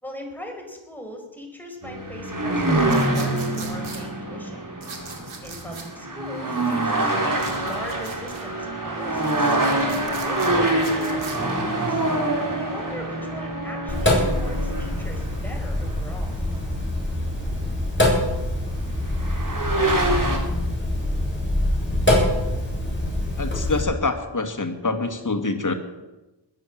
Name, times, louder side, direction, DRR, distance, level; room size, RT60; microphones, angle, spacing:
voice 1, 0.0-4.7 5.4-9.6 10.2-12.0 12.5-16.4, left 1 dB, 5° left, 1 dB, 4.9 m, -40 dB
sound 1, 1.8-17.2 18.5-18.6 19.1-20.4, right 2 dB, 40° right, 3.8 m, -25 dB
sound 2, 2.9-4.0 4.8-5.9 7.4-8.5 9.1-11.4, right 5 dB, 80° right, 2.6 m, -40 dB
Sink (filling or washing), 13.9-23.8, left 1 dB, 25° left, 7.5 m, -24 dB
voice 2, 23.4-25.7, left 3 dB, 40° left, 6 dB, 2.1 m, -25 dB
21.0 x 7.7 x 7.5 m, 1.1 s
cardioid pair, 55°, 47 cm